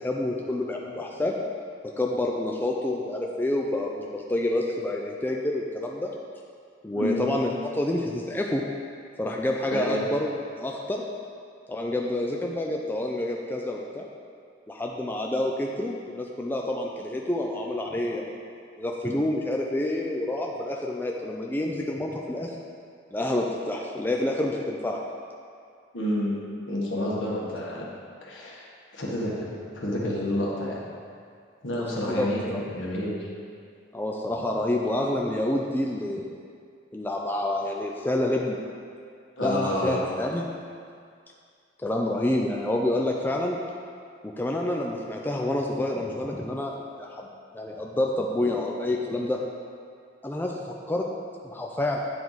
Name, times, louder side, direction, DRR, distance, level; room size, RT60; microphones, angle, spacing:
voice 1, 0.0-1.4 2.0-6.1 6.8-8.6 9.2-10.3 10.6-11.0 11.7-14.1 14.7-18.4 18.8-22.5 23.1-25.0 31.7-32.6 33.9-36.3 36.9-38.6 39.4-40.5 41.8-43.6 44.2-46.7 47.0-47.3 47.5-49.4 50.2-51.1 51.4-52.0, left 1 dB, 10° left, -1 dB, 0.3 m, -28 dB
voice 2, 6.9-7.2 9.7-10.0 25.9-26.3 26.7-27.9 28.2-28.6 28.9-29.5 29.7-30.8 31.6-33.3 39.4-40.0, left 1 dB, 70° left, -4 dB, 1.4 m, -29 dB
9.3 x 4.5 x 4.0 m, 2.3 s
head